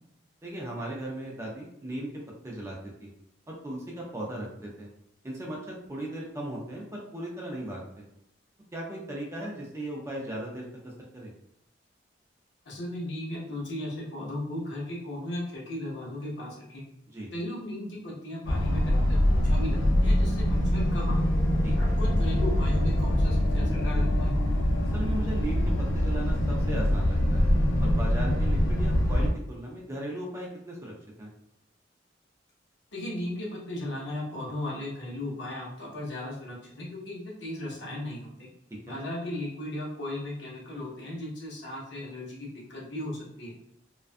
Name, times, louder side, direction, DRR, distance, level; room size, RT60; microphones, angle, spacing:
voice 1, 0.4-2.1 2.4-3.1 3.5-4.9 5.2-8.0 8.7-11.3 17.1-17.3 21.6-21.9 24.9-27.5 27.8-30.9 31.2-31.3 38.9-39.0, right 1 dB, 15° right, -2 dB, 0.4 m, -37 dB
voice 2, 12.6-16.8 17.3-21.4 21.8-24.3 32.9-38.5 38.8-43.5, left 1 dB, 70° left, -4 dB, 0.8 m, -36 dB
sound 1, 18.5-29.3, left 1 dB, 85° left, 0.4 m, -24 dB
2.4 x 2.2 x 2.5 m, 0.78 s
head